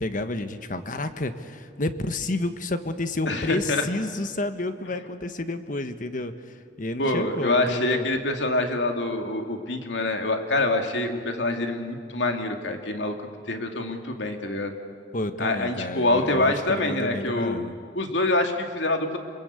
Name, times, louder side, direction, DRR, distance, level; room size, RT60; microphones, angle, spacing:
voice 1, 0.0-8.1 15.1-17.8, left 2 dB, 50° left, 9 dB, 1.4 m, -30 dB
voice 2, 3.3-3.8 7.0-13.1 13.5-14.7 15.4-17.6 17.9-19.2, left 2 dB, 85° left, 4 dB, 2.6 m, -25 dB
28.5 x 21.5 x 8.4 m, 2.3 s
head